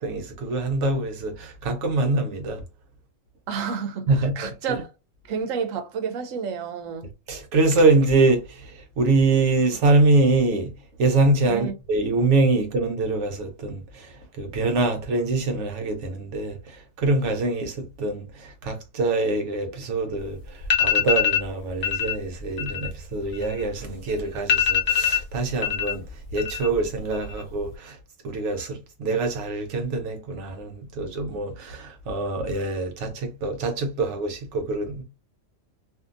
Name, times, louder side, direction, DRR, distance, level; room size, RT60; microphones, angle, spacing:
voice 1, 0.0-2.6 4.1-4.8 7.3-10.7 11.0-26.0 26.3-28.0 28.2-35.0, right 3 dB, 70° right, 1.0 m, -24 dB
voice 2, 3.5-4.9 5.3-7.1 11.5-11.7, right 6 dB, 90° right, 1.0 m, -30 dB
sound 1, 20.2-20.3 20.6-21.5 21.8-22.1 22.5-23.9 24.2-24.3 24.5-25.9 26.2-26.8 27.1-27.7, left 8 dB, 60° left, 0.9 m, -23 dB
2.7 x 2.5 x 2.4 m
omnidirectional pair, 1.3 m